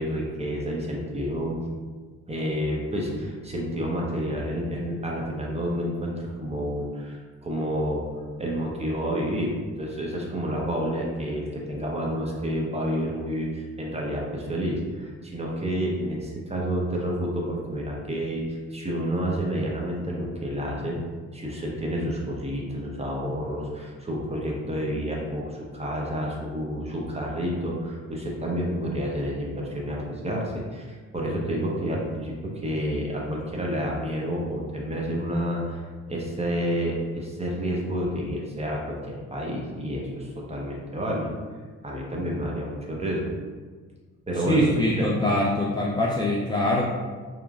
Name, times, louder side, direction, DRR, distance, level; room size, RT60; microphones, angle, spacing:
voice 1, 0.0-1.6 2.3-21.0 21.3-41.3 41.8-43.3 44.3-44.7 45.0-45.1, equal, 20° right, -2 dB, 0.8 m, -29 dB
voice 2, 44.5-46.8, left 1 dB, 15° left, -5 dB, 0.4 m, -23 dB
2.9 x 2.5 x 2.3 m, 1.5 s
supercardioid pair, 50°, 34 cm